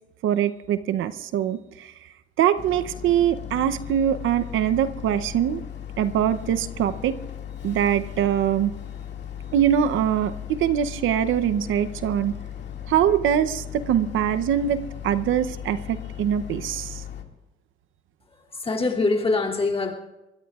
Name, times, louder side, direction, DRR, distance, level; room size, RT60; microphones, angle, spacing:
voice 1, 0.2-1.9 2.4-5.6 6.0-7.2 7.6-8.7 9.5-12.4 12.9-17.0, right 10 dB, 80° right, 11 dB, 0.7 m, -23 dB
Boat Water vehicle, 2.6-17.2, left 9 dB, 60° left, 2.1 m, -37 dB
voice 2, 18.3-19.9, left 3 dB, 30° left, -1 dB, 2.6 m, -24 dB
24.0 x 21.0 x 2.4 m, 1.0 s
cardioid pair, 90°, 20 cm